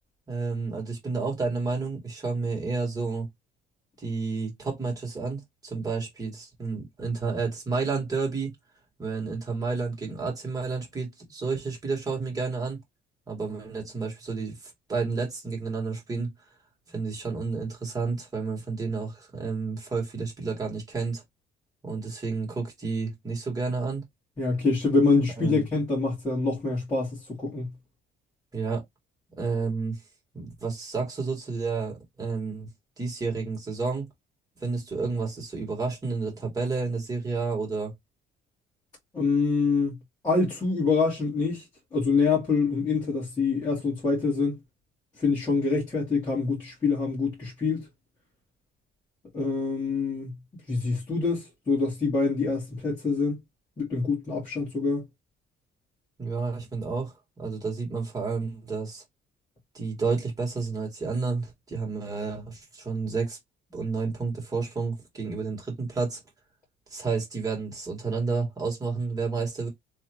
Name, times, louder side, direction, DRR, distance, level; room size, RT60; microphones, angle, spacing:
voice 1, 0.3-3.3 4.0-8.5 9.0-12.8 13.3-16.3 16.9-21.2 21.8-24.0 25.4-25.6 28.5-28.8 29.4-30.0 30.3-32.7 33.0-34.1 34.6-37.9 56.2-57.1 57.4-59.0 59.7-63.4 63.7-66.2 66.9-69.7, right 4 dB, 20° right, 2.1 m, -30 dB
voice 2, 24.4-27.7 39.1-39.9 40.2-41.6 41.9-44.6 45.2-47.9 49.3-50.3 50.7-53.4 53.8-55.0, left 4 dB, 20° left, 2.3 m, -25 dB
3.5 x 3.4 x 3.0 m
cardioid pair, 170°, 18 cm